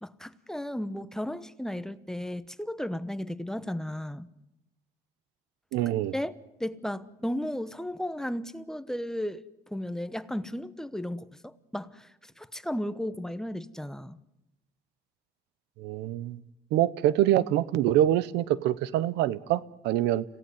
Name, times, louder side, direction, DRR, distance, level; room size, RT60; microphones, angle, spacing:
voice 1, 0.0-4.3 6.1-6.3 6.6-9.4 9.7-12.1 12.4-14.2, left 1 dB, 5° left, 1.0 m, -34 dB
voice 2, 5.7-6.1 15.8-16.4 16.7-20.2, right 12 dB, 90° right, 0.9 m, -25 dB
26.5 x 17.0 x 9.5 m
cardioid pair, 110°, 17 cm